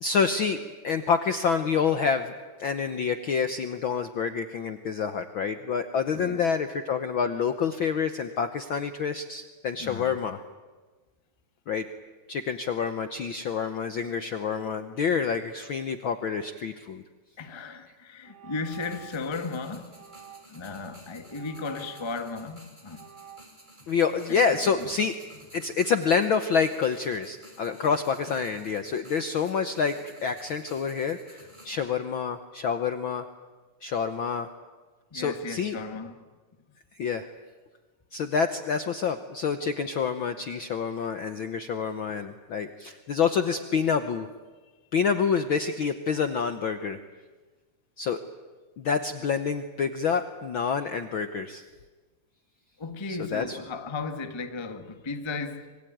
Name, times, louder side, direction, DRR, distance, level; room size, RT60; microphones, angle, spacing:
voice 1, 0.0-10.4 11.7-11.9 12.3-17.0 23.9-25.1 25.5-33.2 33.8-34.5 35.1-35.8 36.9-37.3 38.1-44.3 44.9-47.0 48.0-48.2 48.8-51.6 53.3-53.6, left 6 dB, 65° left, 1.3 m, -27 dB
voice 2, 6.1-6.5 9.8-10.2 17.4-20.0 20.5-23.1 24.3-24.9 35.1-36.2 52.8-55.8, left 4 dB, 20° left, 0.7 m, -36 dB
sound 1, 17.4-17.6 18.2-19.3 19.9-20.7 21.3-22.5 22.9-23.5, right 9 dB, 55° right, 2.5 m, -49 dB
sound 2, 18.7-31.7, equal, 15° right, 5.6 m, -53 dB
26.0 x 23.0 x 9.2 m
omnidirectional pair, 3.4 m